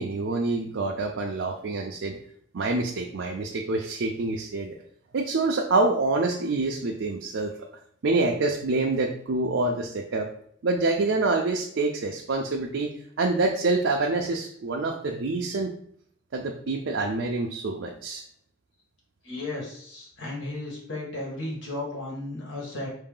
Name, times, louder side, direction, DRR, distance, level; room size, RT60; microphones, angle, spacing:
voice 1, 0.0-2.2 2.5-4.8 5.1-7.6 8.0-10.3 10.6-12.9 13.2-15.7 16.3-18.2, right 3 dB, 85° right, 0 dB, 0.5 m, -26 dB
voice 2, 19.2-22.9, left 2 dB, 90° left, -3 dB, 1.7 m, -34 dB
4.6 x 2.7 x 3.8 m, 0.64 s
head